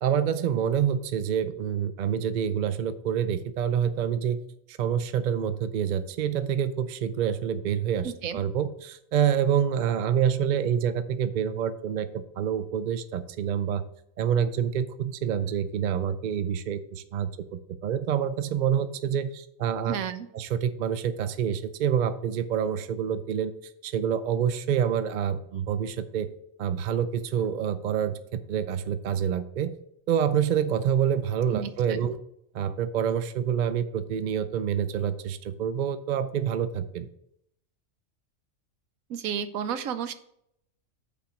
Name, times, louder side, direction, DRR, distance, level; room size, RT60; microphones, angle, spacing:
voice 1, 0.0-4.4 4.7-13.8 14.2-20.0 20.3-23.5 23.8-26.3 26.6-29.7 30.1-32.2 32.5-37.1, right 8 dB, 55° right, 12 dB, 0.5 m, -27 dB
voice 2, 8.0-8.4 19.9-20.3 31.5-31.7 39.1-40.1, right 8 dB, 90° right, 11 dB, 1.1 m, -32 dB
8.6 x 4.2 x 6.3 m, 0.74 s
omnidirectional pair, 1.4 m